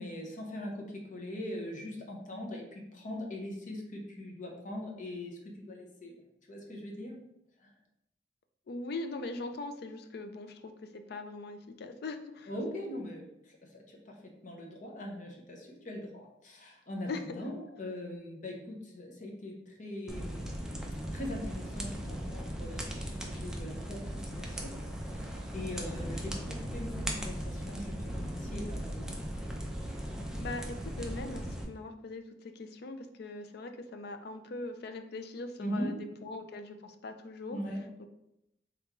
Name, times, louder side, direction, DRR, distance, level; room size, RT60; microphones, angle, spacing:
voice 1, 0.0-6.2 6.5-7.2 7.6-7.7 12.5-14.1 14.4-20.9 21.1-24.7 25.1-29.2 35.6-36.2 37.5-37.9, left 1 dB, 45° left, 0 dB, 0.8 m, -41 dB
voice 2, 8.7-12.5 17.1-17.4 30.4-37.6 38.0-38.1, left 2 dB, 60° left, 7 dB, 0.4 m, -41 dB
sound 1, 20.1-31.6, equal, 5° right, 0.5 m, -38 dB
3.6 x 3.5 x 3.0 m, 0.84 s
head